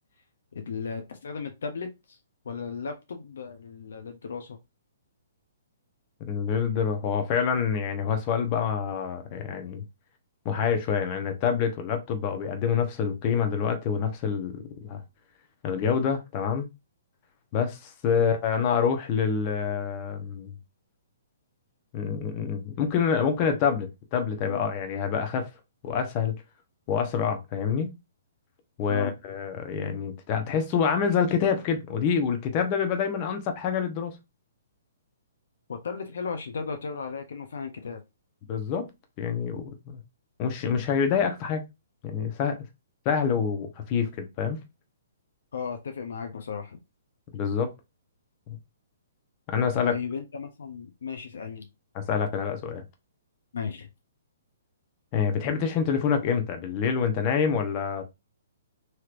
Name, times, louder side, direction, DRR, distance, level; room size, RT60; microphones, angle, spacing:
voice 1, 0.5-2.2 2.4-4.6 18.1-18.2 28.9-29.1 35.7-38.0 45.5-46.8 49.8-51.7 53.5-53.9, left 5 dB, 70° left, 0.6 m, -35 dB
voice 2, 6.3-9.8 10.4-15.0 15.6-16.7 17.5-20.5 21.9-25.5 25.8-26.3 26.9-27.9 28.8-34.1 38.5-38.9 39.2-40.0 40.4-41.6 42.0-42.6 43.0-44.6 47.3-47.7 48.5-48.6 49.5-50.0 51.9-52.8 55.1-58.0, left 7 dB, 35° left, 0.8 m, -27 dB
3.2 x 2.8 x 2.5 m
hypercardioid pair, 130°, 0 cm